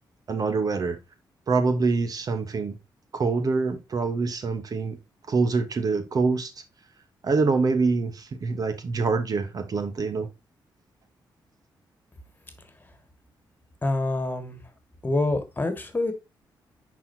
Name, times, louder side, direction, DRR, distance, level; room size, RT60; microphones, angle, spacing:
voice 1, 0.3-1.0 1.5-2.7 3.1-5.0 5.3-6.5 7.2-10.3, right 4 dB, 50° right, 1.0 m, -25 dB
voice 2, 13.8-14.6 15.0-16.1, left 2 dB, 25° left, 1.8 m, -26 dB
10.0 x 4.3 x 2.7 m
cardioid pair, 85°, 8 cm